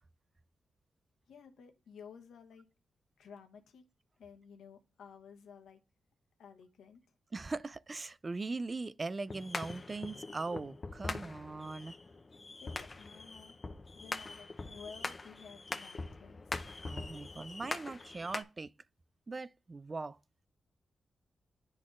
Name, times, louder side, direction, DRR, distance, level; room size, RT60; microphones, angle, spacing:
voice 1, 1.3-2.7 3.2-3.8 4.2-5.8 6.4-7.1 12.6-13.6 13.9-16.6, left 6 dB, 85° left, 1.0 m, -54 dB
voice 2, 7.3-11.9 16.8-18.7 19.3-20.2, right 3 dB, 35° right, 0.3 m, -40 dB
sound 1, 9.3-18.4, left 3 dB, 35° left, 0.6 m, -43 dB
10.5 x 4.0 x 2.5 m
cardioid pair, 60°, 0 cm